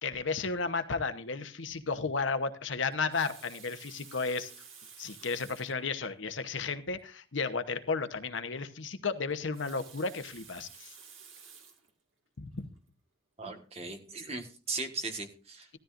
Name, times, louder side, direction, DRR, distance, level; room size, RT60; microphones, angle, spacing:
voice 1, 0.0-4.5 5.0-10.9 12.4-12.7, left 4 dB, 75° left, 9 dB, 0.9 m, -33 dB
Water tap faucet, 2.9-5.8 6.6-6.7 7.0-7.1 9.3-11.9 12.6-12.8, right 6 dB, 85° right, 2.1 m, -52 dB
voice 2, 13.4-15.7, right 3 dB, 30° right, 5 dB, 1.5 m, -38 dB
15.5 x 13.0 x 2.5 m, 0.38 s
head